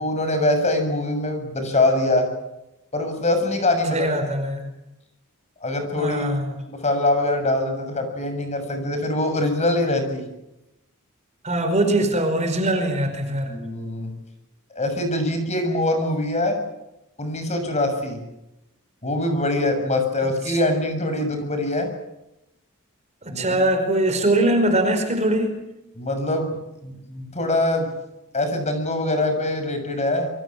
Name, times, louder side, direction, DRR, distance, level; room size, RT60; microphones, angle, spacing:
voice 1, 0.0-2.3 2.9-4.1 5.6-6.3 6.7-10.2 13.4-14.1 14.7-16.6 17.2-18.2 19.0-21.9 23.3-23.6 26.0-26.6 26.8-27.9 28.3-30.3, left 1 dB, 30° left, 6 dB, 6.8 m, -23 dB
voice 2, 3.9-4.7 6.0-6.5 11.4-13.5 20.5-20.6 23.2-25.5, right 1 dB, 30° right, 7 dB, 5.0 m, -22 dB
27.5 x 24.0 x 7.5 m, 0.90 s
head